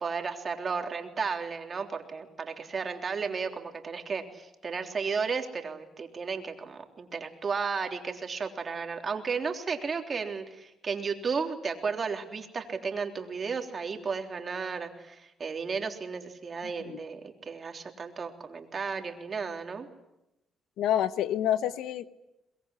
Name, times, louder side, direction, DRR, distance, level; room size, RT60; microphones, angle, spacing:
voice 1, 0.0-19.9, right 5 dB, 40° right, 4 dB, 3.5 m, -34 dB
voice 2, 20.8-22.1, left 11 dB, 85° left, 13 dB, 1.1 m, -28 dB
23.0 x 21.5 x 9.9 m, 0.91 s
cardioid pair, 90°, 0 cm